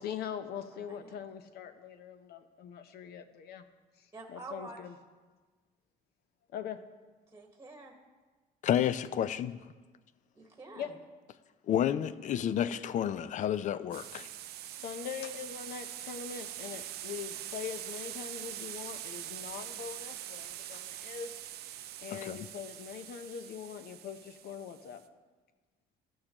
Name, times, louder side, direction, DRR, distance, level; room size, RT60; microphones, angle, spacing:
voice 1, 0.0-3.6 4.3-4.9 6.5-6.8 10.8-10.9 14.6-21.3 22.0-25.0, left 8 dB, 70° left, 10 dB, 0.8 m, -42 dB
voice 2, 0.7-1.2 4.1-4.8 7.3-7.9 10.3-11.0 14.7-14.8, right 2 dB, 15° right, 2 dB, 1.2 m, -48 dB
voice 3, 8.6-9.6 11.7-14.3 22.1-22.4, left 10 dB, 50° left, 15 dB, 0.4 m, -30 dB
sound 1, 13.9-25.0, right 12 dB, 70° right, 0.5 m, -43 dB
14.5 x 6.4 x 2.9 m, 1.3 s
cardioid pair, 110°, 17 cm